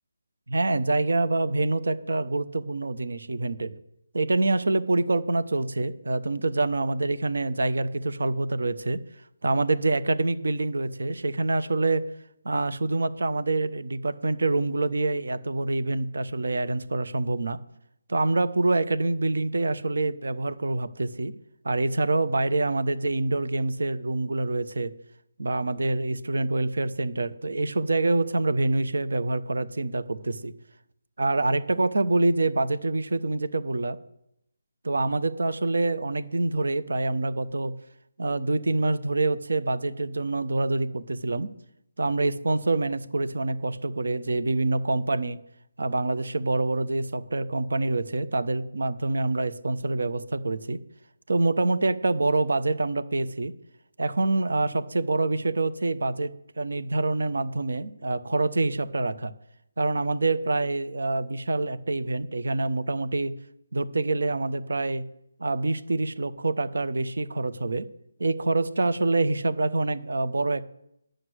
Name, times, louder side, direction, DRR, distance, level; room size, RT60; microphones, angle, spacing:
voice 1, 0.5-3.8 4.1-9.0 9.4-12.1 12.4-17.6 18.1-21.3 21.6-24.9 25.4-30.5 31.2-34.0 34.8-37.7 38.2-41.5 42.0-45.4 45.8-50.8 51.3-53.5 54.0-59.3 59.8-63.4 63.7-65.0 65.4-67.9 68.2-70.6, right 2 dB, 70° right, 13 dB, 0.9 m, -26 dB
10.5 x 6.5 x 8.0 m, 0.79 s
figure-of-eight pair, 150°, 0 cm